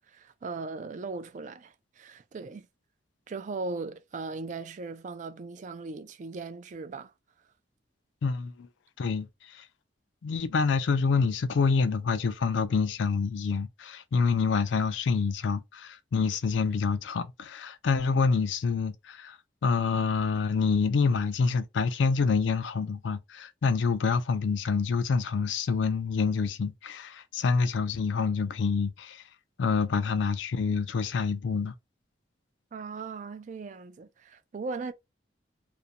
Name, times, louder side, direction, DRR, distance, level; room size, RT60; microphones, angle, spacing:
voice 1, 0.0-2.7 3.3-7.1 32.7-34.9, right 3 dB, 40° right, 0.3 m, -38 dB
voice 2, 8.2-8.7 9.0-9.7 10.2-29.3 29.6-31.7, left 5 dB, 85° left, 0.4 m, -27 dB
2.5 x 2.1 x 2.8 m
head